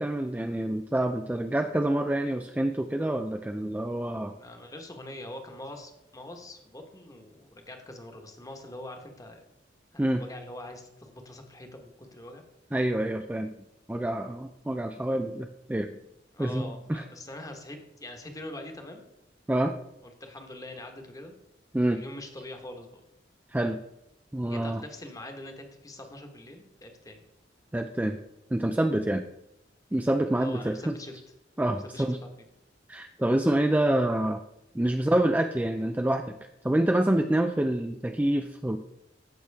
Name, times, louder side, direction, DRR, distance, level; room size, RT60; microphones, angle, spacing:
voice 1, 0.0-4.3 10.0-10.2 12.7-13.5 13.9-15.9 16.4-17.0 19.5-19.8 21.7-22.0 23.5-23.8 24.3-24.8 27.7-28.2 28.5-29.2 29.9-30.9 31.6-32.2 32.9-34.4 34.7-36.3 36.6-38.8, right 1 dB, 10° right, 5 dB, 0.4 m, -27 dB
voice 2, 4.3-9.4 9.9-12.4 16.3-19.1 20.0-21.3 21.8-23.0 24.4-27.2 30.3-31.2 31.8-32.5, left 1 dB, 20° left, 4 dB, 1.3 m, -43 dB
15.0 x 6.0 x 3.5 m, 0.84 s
head